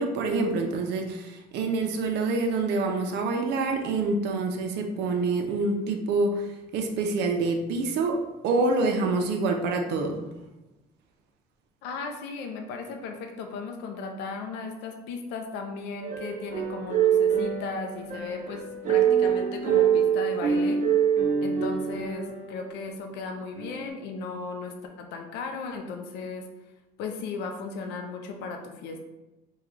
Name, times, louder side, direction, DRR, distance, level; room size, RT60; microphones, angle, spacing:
voice 1, 0.0-6.4 6.7-10.2, right 3 dB, 80° right, 3 dB, 0.5 m, -26 dB
voice 2, 11.8-20.8 21.4-26.4 27.0-29.0, left 4 dB, 90° left, 4 dB, 0.5 m, -36 dB
sound 1, 16.0-23.0 23.6-23.9, right 8 dB, 50° right, 0.8 m, -25 dB
3.6 x 2.3 x 3.1 m, 1.0 s
cardioid pair, 110°, 17 cm